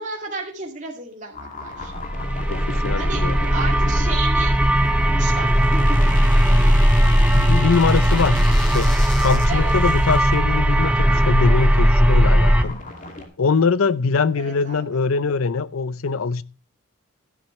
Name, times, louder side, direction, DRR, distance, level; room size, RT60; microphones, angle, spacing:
voice 1, 0.0-1.9 3.0-3.2 3.5-4.5 4.9-6.0 7.2-7.5 9.5-9.7 14.3-15.0, right 3 dB, 35° right, 2.4 m, -33 dB
sound 1, 1.3-13.3, left 2 dB, 40° left, 2.5 m, -35 dB
sound 2, 2.0-12.6, equal, 5° right, 0.7 m, -17 dB
voice 2, 2.5-3.5 7.3-8.5 8.7-8.9 9.2-12.8 13.4-16.4, left 5 dB, 85° left, 0.6 m, -22 dB
12.5 x 11.0 x 3.2 m
head